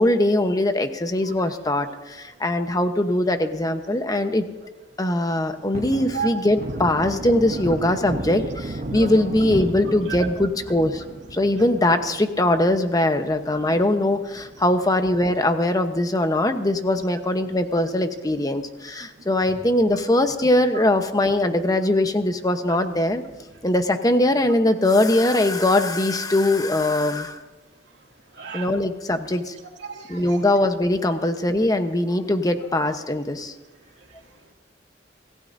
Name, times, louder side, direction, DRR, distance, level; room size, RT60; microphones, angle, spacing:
voice 1, 0.0-4.4 5.0-11.0 11.3-23.2 23.6-27.4 28.5-29.5 30.1-33.5, left 1 dB, 20° left, 7 dB, 1.0 m, -21 dB
Thunder, 5.3-16.1 16.4-16.5 16.9-18.4 18.7-18.8 19.2-20.0 20.4-20.5 20.8-20.9 23.3-23.8, right 2 dB, 45° right, 1.0 m, -35 dB
voice 2, 28.4-28.7 29.8-30.2, right 6 dB, 80° right, 0 dB, 2.5 m, -31 dB
26.5 x 15.5 x 2.7 m, 1.1 s
head